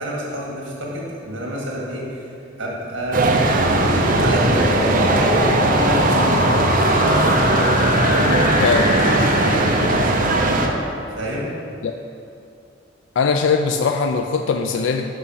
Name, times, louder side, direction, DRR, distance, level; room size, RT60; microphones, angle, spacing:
voice 1, 0.0-2.3 2.6-3.3 3.8-5.0 5.6-6.8 8.7-8.8 9.0-9.7 11.2-11.5, equal, 70° right, -3 dB, 1.8 m, -28 dB
sound 1, 3.1-10.7, right 2 dB, 45° right, 0.6 m, -18 dB
sound 2, 3.2-11.0, left 2 dB, 35° left, 0.7 m, -25 dB
voice 2, 8.6-8.9 11.8-11.9 13.2-15.1, left 5 dB, 70° left, 5 dB, 0.3 m, -20 dB
6.1 x 5.5 x 5.6 m, 2.6 s
head